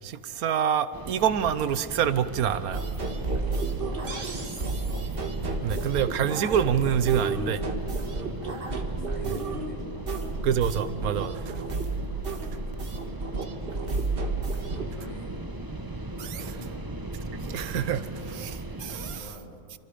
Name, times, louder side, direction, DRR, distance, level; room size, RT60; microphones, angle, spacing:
voice 1, 0.0-2.8 5.6-7.6 10.4-11.5 16.2-16.4 17.5-19.2, right 9 dB, 85° right, 1.3 m, -27 dB
sound 1, 0.9-19.2, right 2 dB, 15° right, 1.2 m, -38 dB
sound 2, 2.7-14.9, right 3 dB, 40° right, 1.8 m, -31 dB
voice 2, 3.6-4.7 8.0-10.1 12.5-12.9 13.3-14.0 14.5-15.4 16.2-16.9 19.0-19.5, equal, 30° left, 3.7 m, -47 dB
29.5 x 25.5 x 5.1 m
omnidirectional pair, 1.5 m